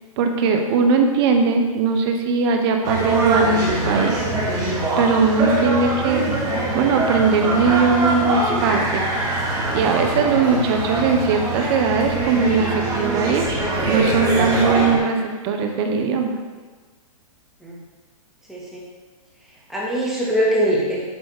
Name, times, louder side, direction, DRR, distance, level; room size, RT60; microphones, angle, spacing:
voice 1, 0.2-4.3 5.0-6.3 6.7-9.0 9.7-13.5 13.9-16.3, right 5 dB, 45° right, 4 dB, 1.3 m, -20 dB
sound 1, 2.8-15.0, right 2 dB, 20° right, 2.8 m, -23 dB
voice 2, 18.5-18.8 19.7-21.0, equal, ahead, -7 dB, 2.4 m, -22 dB
9.4 x 4.0 x 6.7 m, 1.4 s
hypercardioid pair, 135°, 19 cm